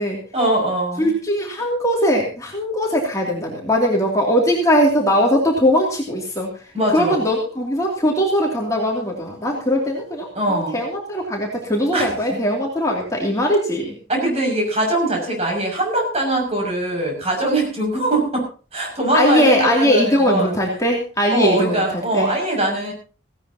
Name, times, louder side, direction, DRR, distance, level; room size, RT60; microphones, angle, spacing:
voice 1, 0.3-1.1 6.7-7.3 10.3-10.8 11.9-12.4 14.1-18.4 18.7-20.6 21.3-22.9, right 1 dB, 30° right, 0 dB, 6.3 m, -22 dB
voice 2, 1.0-6.7 6.9-13.9 19.1-22.3, equal, 15° left, -2 dB, 2.8 m, -20 dB
17.5 x 17.0 x 2.9 m, 0.37 s
head